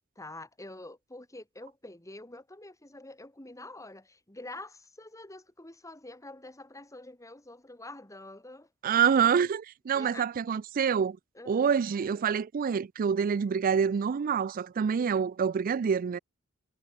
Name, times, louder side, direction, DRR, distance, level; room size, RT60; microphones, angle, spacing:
voice 1, 0.2-8.7 9.9-10.3 11.3-11.7, left 2 dB, 15° left, 3.0 m, -46 dB
voice 2, 8.8-11.2 11.5-16.2, right 7 dB, 40° right, 0.3 m, -26 dB
head